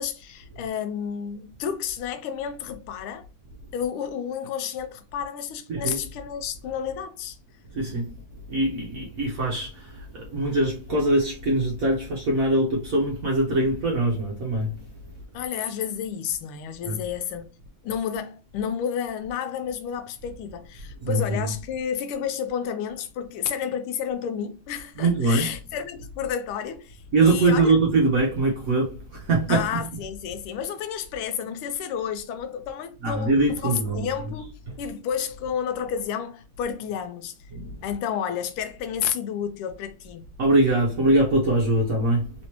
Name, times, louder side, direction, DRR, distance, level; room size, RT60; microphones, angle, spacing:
voice 1, 0.0-3.3 3.7-7.4 15.3-17.5 17.8-27.7 29.5-37.3 37.8-40.3, left 8 dB, 85° left, 1.5 m, -31 dB
voice 2, 5.7-6.0 7.7-8.2 8.5-14.8 16.9-17.0 21.0-21.5 25.0-25.5 27.1-29.8 33.0-34.1 37.5-37.8 40.4-42.3, right 2 dB, 60° right, 0.9 m, -23 dB
3.4 x 3.1 x 2.9 m
omnidirectional pair, 2.4 m